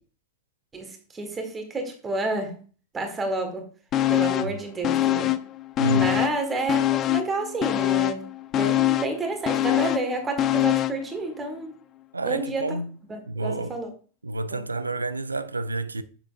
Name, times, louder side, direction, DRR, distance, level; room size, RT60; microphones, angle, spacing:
voice 1, 0.7-2.5 2.9-3.7 4.1-5.4 5.9-8.3 8.5-11.7 12.2-12.8 13.1-13.9 14.5-14.6, right 2 dB, 15° right, 1.6 m, -30 dB
sound 1, 3.9-4.6 4.8-6.4 6.7-11.1 11.4-11.5, left 14 dB, 30° left, 0.4 m, -24 dB
voice 2, 5.8-6.2 12.1-12.9 13.3-13.7 14.2-16.0, right 2 dB, 80° right, 0.4 m, -29 dB
7.2 x 6.9 x 2.5 m
figure-of-eight pair, 90°, 0 cm